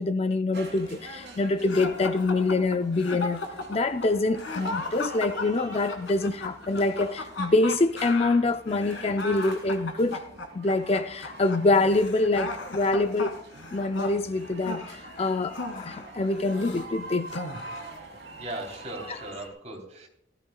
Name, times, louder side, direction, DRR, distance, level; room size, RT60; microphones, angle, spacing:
voice 1, 0.0-3.4 3.7-10.3 10.5-13.4 13.7-17.4, left 2 dB, 30° left, 0.4 m, -25 dB
sound 1, 0.5-19.5, right 2 dB, 60° right, 3.3 m, -45 dB
sound 2, 1.7-16.9 17.3-18.0, left 2 dB, 90° left, 2.2 m, -36 dB
voice 2, 18.3-20.1, right 1 dB, 35° right, 3.4 m, -38 dB
17.5 x 14.5 x 2.4 m
head